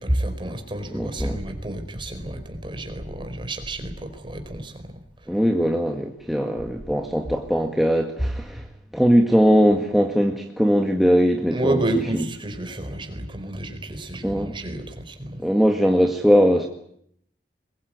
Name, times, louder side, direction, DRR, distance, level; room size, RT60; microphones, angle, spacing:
voice 1, 0.0-5.0 8.5-8.6 11.5-15.4, right 1 dB, 30° right, 6 dB, 4.6 m, -30 dB
voice 2, 0.9-1.4 5.3-8.7 8.9-11.8 12.1-12.2 14.2-14.5 15.4-16.7, equal, ahead, 2 dB, 1.9 m, -20 dB
22.5 x 21.5 x 9.5 m, 0.69 s
head